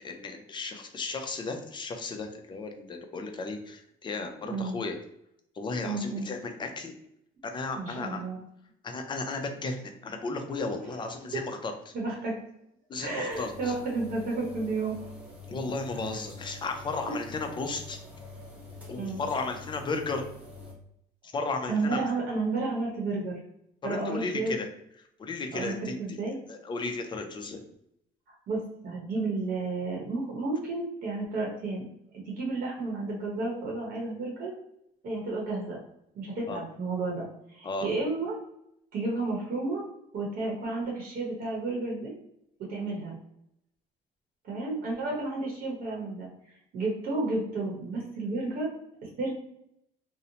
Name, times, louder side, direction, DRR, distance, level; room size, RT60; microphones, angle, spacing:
voice 1, 0.0-4.9 5.6-6.9 7.4-8.2 8.8-11.9 12.9-13.7 15.5-18.0 18.9-20.2 21.3-22.0 23.8-24.7 25.2-26.2 26.5-27.6 36.5-36.6 37.6-37.9, left 3 dB, 30° left, 4 dB, 0.5 m, -34 dB
voice 2, 4.4-4.8 5.8-6.3 7.8-8.4 11.3-11.4 11.9-12.4 13.0-15.1 19.0-19.2 21.7-23.4 23.8-24.6 25.5-26.4 28.3-31.9 32.3-34.5 35.0-35.8 36.2-38.4 38.9-39.9 40.1-42.1 42.7-43.2 44.4-48.7 49.0-49.3, right 3 dB, 60° right, -2 dB, 0.9 m, -32 dB
sound 1, 13.3-20.7, left 3 dB, 10° right, 0.9 m, -46 dB
2.7 x 2.0 x 2.7 m, 0.77 s
cardioid pair, 110°, 17 cm